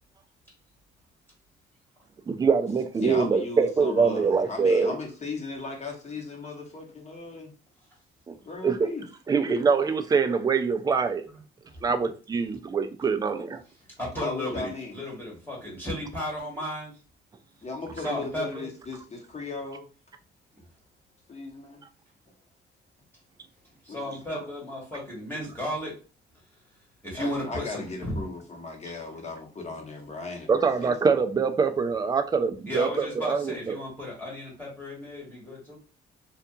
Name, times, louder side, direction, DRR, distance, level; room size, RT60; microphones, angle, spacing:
voice 1, 2.3-5.0 8.3-8.4 8.6-8.9 9.3-11.3 11.8-13.6 30.5-33.8, right 5 dB, 20° right, 0.3 m, -24 dB
voice 2, 3.0-7.5 8.5-9.0 9.3-9.7 14.2-15.0 17.6-19.9 21.3-21.8 23.9-24.5 27.1-31.0, left 3 dB, 35° left, 0.9 m, -37 dB
voice 3, 14.0-16.9 18.0-18.7 23.8-25.9 27.0-28.2 32.7-35.8, left 1 dB, 10° left, 1.2 m, -34 dB
2.7 x 2.4 x 2.3 m
cardioid pair, 90°, 20 cm